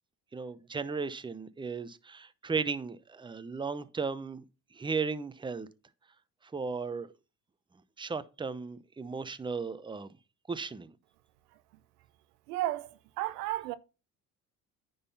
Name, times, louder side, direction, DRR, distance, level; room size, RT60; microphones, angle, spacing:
voice 1, 0.3-4.4 4.7-5.7 6.5-7.1 8.0-10.1 10.5-10.9, right 4 dB, 10° right, 0.6 m, -35 dB
voice 2, 12.5-13.8, right 15 dB, 85° right, 0.6 m, -33 dB
9.6 x 4.0 x 5.6 m
hypercardioid pair, 60°, 46 cm